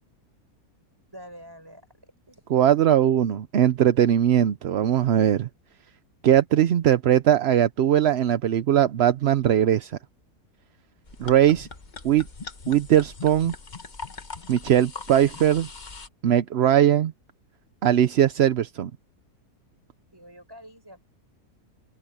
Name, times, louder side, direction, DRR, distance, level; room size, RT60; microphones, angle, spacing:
voice 1, 1.1-2.4 20.1-21.0, equal, 15° right, 6.3 m, -47 dB
voice 2, 2.5-5.5 6.2-10.0 11.2-11.7 12.0-12.2 12.7-13.5 14.5-15.7 16.2-17.1 17.8-18.9, right 10 dB, 60° right, 0.7 m, -20 dB
sound 1, 11.1-16.1, left 4 dB, 30° left, 1.2 m, -40 dB
omnidirectional pair, 1.7 m